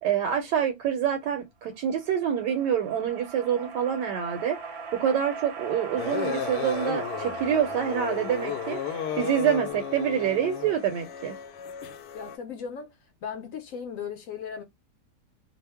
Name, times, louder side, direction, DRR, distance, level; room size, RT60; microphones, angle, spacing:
voice 1, 0.0-4.6 4.9-8.8 9.2-11.3, right 9 dB, 85° right, 1.2 m, -26 dB
sound 1, 1.9-11.4, right 5 dB, 55° right, 0.7 m, -40 dB
sound 2, 6.0-12.4, left 9 dB, 85° left, 1.2 m, -34 dB
voice 2, 12.1-14.6, left 7 dB, 65° left, 0.9 m, -37 dB
2.8 x 2.0 x 3.3 m
omnidirectional pair, 1.8 m